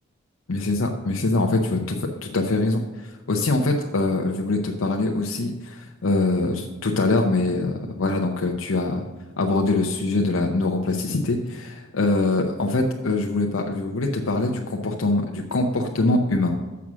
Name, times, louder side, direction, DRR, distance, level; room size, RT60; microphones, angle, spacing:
voice 1, 0.5-9.1 9.4-16.5, left 2 dB, 70° left, 2 dB, 0.7 m, -23 dB
7.0 x 6.1 x 6.1 m, 1.3 s
head